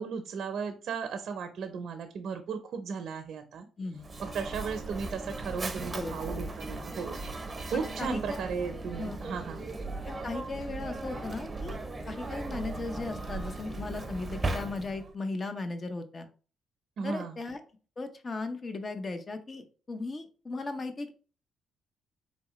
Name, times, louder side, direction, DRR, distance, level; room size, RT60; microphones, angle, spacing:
voice 1, 0.0-3.7 4.2-7.2 7.6-9.6 17.0-17.4, right 6 dB, 65° right, 6 dB, 0.5 m, -35 dB
Mechanisms, 4.0-15.1, right 2 dB, 25° right, 0.6 m, -37 dB
voice 2, 5.9-6.4 7.7-8.4 9.0-9.2 10.1-11.8 12.1-16.3 17.0-17.6 18.0-21.1, left 3 dB, 35° left, 8 dB, 0.7 m, -37 dB
4.1 x 3.5 x 3.0 m, 0.38 s
cardioid pair, 90°, 0 cm